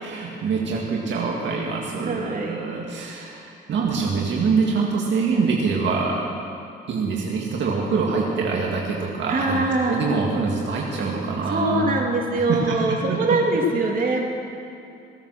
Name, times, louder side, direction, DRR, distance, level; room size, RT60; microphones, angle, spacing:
voice 1, 0.0-6.2 6.9-11.9 12.4-13.4, right 4 dB, 65° right, -3 dB, 2.0 m, -25 dB
voice 2, 2.0-2.6 9.3-10.0 11.5-14.2, right 2 dB, 45° right, -1 dB, 2.4 m, -23 dB
18.5 x 9.0 x 6.4 m, 2.6 s
cardioid pair, 90°, 20 cm